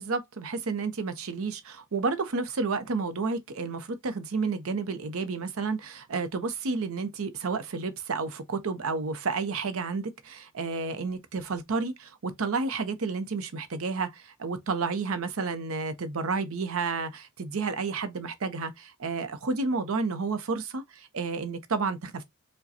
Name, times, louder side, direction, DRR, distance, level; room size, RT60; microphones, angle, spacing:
voice 1, 0.0-22.2, right 4 dB, 70° right, 0.6 m, -31 dB
4.8 x 2.2 x 2.7 m
head